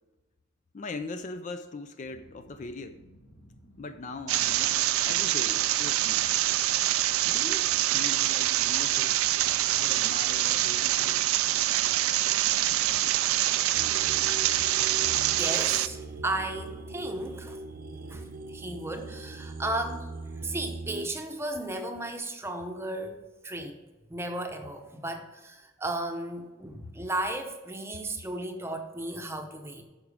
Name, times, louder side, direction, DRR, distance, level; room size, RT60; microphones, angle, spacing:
voice 1, 0.7-3.0 3.8-6.2 7.3-9.2 9.8-11.2, left 3 dB, 35° left, 9 dB, 0.4 m, -40 dB
sound 1, 2.0-19.7, equal, 75° left, 2.4 m, -56 dB
sound 2, 4.3-15.9, right 14 dB, 85° right, 0.4 m, -25 dB
sound 3, 13.8-21.1, right 2 dB, 40° right, 0.6 m, -40 dB
voice 2, 15.4-17.6 18.1-20.1 20.4-23.8 24.1-29.8, right 1 dB, 10° right, 5 dB, 0.8 m, -35 dB
9.0 x 6.0 x 4.9 m, 1.2 s
head